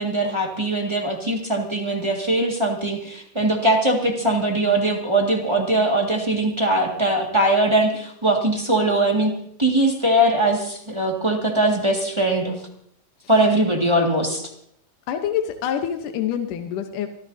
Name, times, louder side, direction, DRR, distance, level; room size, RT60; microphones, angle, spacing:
voice 1, 0.0-12.6 13.3-14.5, right 1 dB, 15° right, 0 dB, 1.2 m, -21 dB
voice 2, 15.1-17.1, left 9 dB, 75° left, 5 dB, 2.5 m, -26 dB
26.0 x 14.0 x 2.8 m, 0.68 s
omnidirectional pair, 3.8 m